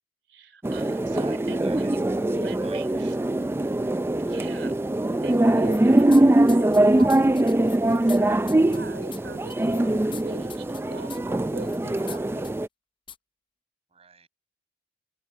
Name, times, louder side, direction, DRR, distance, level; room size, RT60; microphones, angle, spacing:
voice 1, 0.3-3.2 4.2-6.1 6.4-7.3 7.9-12.5, right 3 dB, 80° right, 3.0 m, -43 dB
sound 1, 0.6-12.7, right 1 dB, 15° right, 0.4 m, -22 dB
voice 2, 2.6-3.1 13.9-14.3, right 5 dB, 35° right, 5.9 m, -49 dB
sound 2, 5.6-6.2 6.5-8.2 8.5-8.8 9.1-9.2 9.5-10.2 10.5-10.8 11.1-11.2 11.6-12.2 12.4-12.5 13.1-13.2, left 6 dB, 25° left, 0.8 m, -42 dB
head